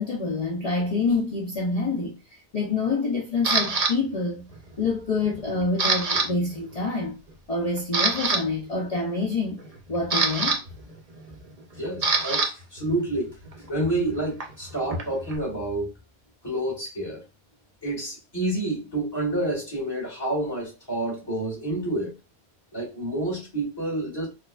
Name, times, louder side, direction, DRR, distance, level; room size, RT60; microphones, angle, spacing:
voice 1, 0.0-2.2 2.5-4.5 4.8-7.2 7.5-9.6 9.9-10.6, left 3 dB, 40° left, 0.6 m, -26 dB
Camera, 3.4-3.9 4.5-4.9 5.2-6.3 6.5-6.7 7.3-7.4 7.8-8.4 9.6-12.5 12.8-15.4, right 4 dB, 40° right, 0.6 m, -26 dB
voice 2, 11.8-13.3 13.7-15.9 16.4-17.2 17.8-22.1 22.7-24.3, right 1 dB, 20° left, 1.8 m, -28 dB
4.3 x 2.4 x 2.4 m
omnidirectional pair, 1.2 m